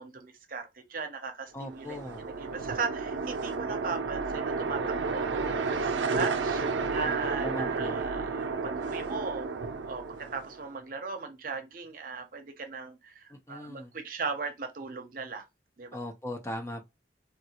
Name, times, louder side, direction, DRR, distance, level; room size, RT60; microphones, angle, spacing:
voice 1, 0.0-2.0 2.4-6.6 6.9-9.5 9.9-15.4 15.8-15.9, right 4 dB, 50° right, 0.6 m, -37 dB
voice 2, 1.5-2.2 6.7-7.1 7.4-8.0 13.3-13.9 15.9-16.8, equal, 15° left, 0.5 m, -39 dB
sound 1, 1.6-10.7, right 4 dB, 90° right, 0.4 m, -32 dB
3.7 x 2.3 x 2.8 m
head